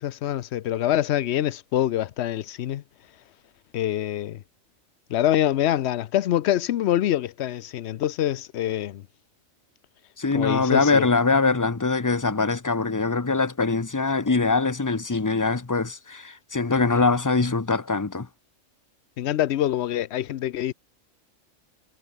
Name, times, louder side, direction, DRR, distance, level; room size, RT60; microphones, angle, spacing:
voice 1, 0.0-2.8 3.7-4.4 5.1-9.0 10.3-11.0 19.2-20.7, left 12 dB, 65° left, 0.8 m, -25 dB
voice 2, 10.2-18.3, left 3 dB, 15° left, 0.7 m, -23 dB
omnidirectional pair, 1.3 m